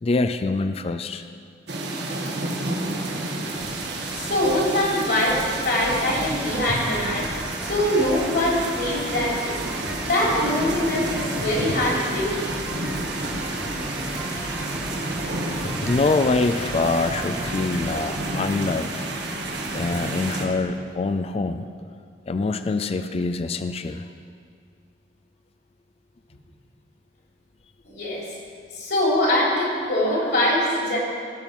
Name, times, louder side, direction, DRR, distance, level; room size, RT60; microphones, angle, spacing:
voice 1, 0.0-1.2 5.9-6.0 15.9-18.9 19.7-21.7 22.3-24.1, left 3 dB, 35° left, 10 dB, 0.4 m, -24 dB
sound 1, 1.7-20.4, right 2 dB, 65° right, 1.5 m, -30 dB
sound 2, 3.4-20.8, left 1 dB, 80° left, 1.3 m, -40 dB
voice 2, 4.1-9.6 10.0-12.4 27.9-28.2 28.7-31.0, left 1 dB, 65° left, -4 dB, 3.5 m, -23 dB
sound 3, 5.8-18.2, equal, 10° right, 1.1 m, -37 dB
17.5 x 6.0 x 5.4 m, 2.2 s
head